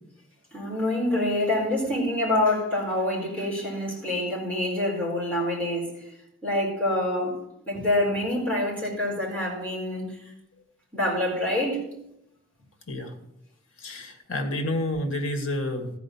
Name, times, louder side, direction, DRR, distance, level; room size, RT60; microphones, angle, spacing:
voice 1, 0.5-6.1 6.4-7.4 7.7-10.2 10.9-11.8, left 1 dB, 5° left, -6 dB, 4.5 m, -26 dB
voice 2, 13.8-15.9, left 1 dB, 80° left, 4 dB, 1.7 m, -29 dB
14.0 x 5.1 x 7.1 m, 0.81 s
head